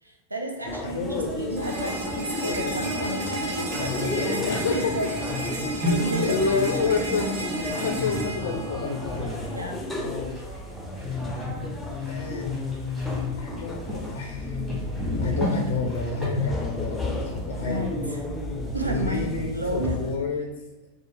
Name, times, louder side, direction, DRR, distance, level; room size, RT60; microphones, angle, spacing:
voice 1, 0.0-5.1 5.8-6.9 9.5-9.8 17.5-18.2 18.7-20.0, right 1 dB, 80° right, 2 dB, 0.5 m, -33 dB
sound 1, 0.7-20.2, left 2 dB, 5° left, 0.5 m, -32 dB
voice 2, 0.8-1.3 2.2-2.8 4.4-4.9 5.5-5.6 6.2-7.3 7.7-9.3 9.9-10.4 12.1-12.6 13.3-14.7 15.2-18.0 18.8-20.5, left 5 dB, 55° left, 1 dB, 0.4 m, -29 dB
sound 2, 1.6-9.5, right 1 dB, 50° right, 0.8 m, -32 dB
sound 3, 2.7-18.1, left 1 dB, 10° right, 1.5 m, -36 dB
4.2 x 2.1 x 3.1 m, 1.1 s
figure-of-eight pair, 90°, 0 cm